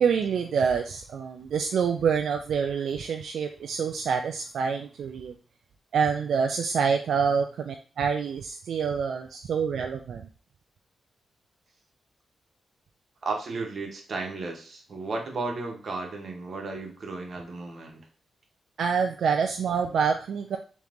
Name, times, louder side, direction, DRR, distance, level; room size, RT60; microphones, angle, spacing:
voice 1, 0.0-5.3 5.9-10.3 18.8-20.6, right 6 dB, 80° right, 4 dB, 0.3 m, -26 dB
voice 2, 13.2-18.0, right 3 dB, 55° right, 2 dB, 1.0 m, -34 dB
3.7 x 3.1 x 3.5 m, 0.39 s
wide cardioid pair, 110°, 0 cm